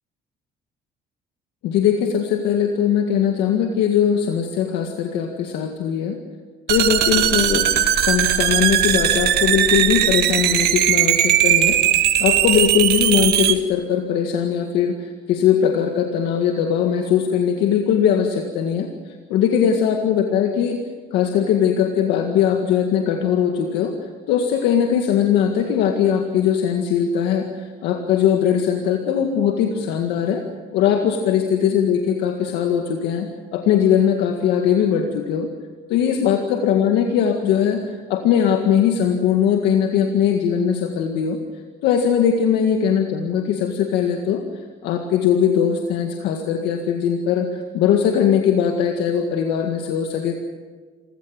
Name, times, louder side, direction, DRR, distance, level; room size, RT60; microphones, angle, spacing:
voice 1, 1.6-6.2 6.7-7.7 8.0-20.8 21.1-30.4 30.7-35.5 35.9-41.4 41.8-44.4 44.8-50.3, left 8 dB, 90° left, 3 dB, 1.9 m, -20 dB
sound 1, 6.7-13.5, right 11 dB, 70° right, 1.7 m, -18 dB
26.5 x 16.5 x 7.6 m, 1.5 s
cardioid pair, 110°, 17 cm